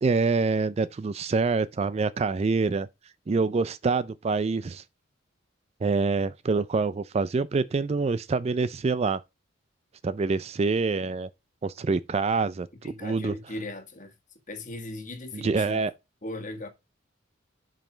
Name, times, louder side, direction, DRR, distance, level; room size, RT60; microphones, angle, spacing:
voice 1, 0.0-2.9 3.3-4.8 5.8-9.2 10.0-11.3 11.6-13.3 15.3-15.9, right 4 dB, 30° right, 0.3 m, -26 dB
voice 2, 12.8-14.1 14.5-15.8 16.2-16.7, left 2 dB, 40° left, 1.6 m, -38 dB
7.5 x 5.3 x 5.0 m
head